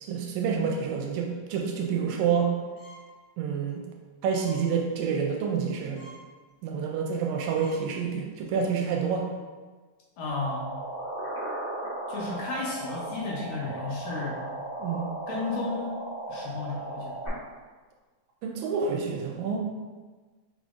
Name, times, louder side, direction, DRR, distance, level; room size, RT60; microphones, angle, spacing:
voice 1, 0.0-2.5 3.4-3.8 4.2-6.1 6.6-9.3 14.8-15.1 18.4-19.6, right 6 dB, 80° right, 1 dB, 1.8 m, -28 dB
sound 1, 2.8-3.1 3.6-3.7 4.4-4.6 5.0-5.3 5.7-5.8 5.9-6.2 6.7-6.9 7.3-7.4 7.5-7.8 8.3-8.5, equal, 90° left, 2.7 m, -51 dB
voice 2, 10.2-10.7 12.1-14.5 15.3-16.0 16.3-17.2, left 3 dB, 70° left, -4 dB, 1.8 m, -33 dB
sound 2, 10.3-17.3, right 2 dB, 55° left, 0.6 m, -36 dB
5.2 x 3.9 x 2.4 m, 1.4 s
omnidirectional pair, 3.4 m